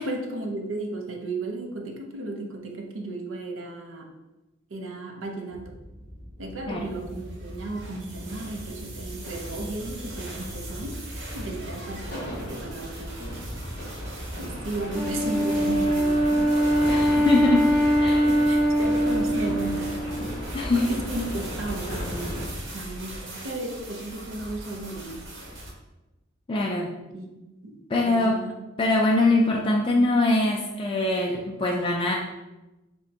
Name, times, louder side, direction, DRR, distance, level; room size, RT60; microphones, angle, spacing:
voice 1, 0.0-4.1 4.7-5.8 6.4-11.0 11.3-13.4 14.4-17.5 18.2-25.2 27.1-27.3 27.6-28.5, right 2 dB, 85° right, 2 dB, 0.6 m, -35 dB
sound 1, 5.5-22.5, equal, 50° left, 1.1 m, -37 dB
sound 2, 7.0-25.7, right 1 dB, 65° right, 1.0 m, -41 dB
Wind instrument woodwind instrument, 14.9-20.3, equal, 5° left, 1.1 m, -22 dB
voice 2, 16.9-17.7 18.0-18.3 20.5-20.9 26.5-26.9 27.9-28.4 28.8-32.1, left 2 dB, 25° left, -2 dB, 0.3 m, -23 dB
6.1 x 2.2 x 2.7 m, 1.0 s
head